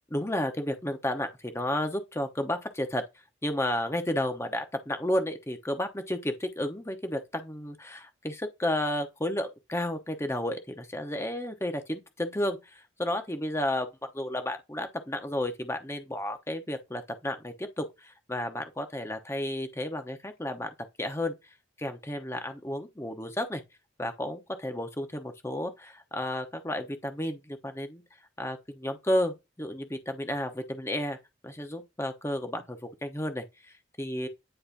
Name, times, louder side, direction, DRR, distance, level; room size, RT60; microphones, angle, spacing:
voice 1, 0.1-3.1 3.4-13.9 14.1-21.3 21.8-23.6 24.0-28.0 28.4-31.2 31.4-33.4 34.0-34.3, left 1 dB, 15° left, 1.0 m, -32 dB
10.0 x 4.3 x 2.6 m
head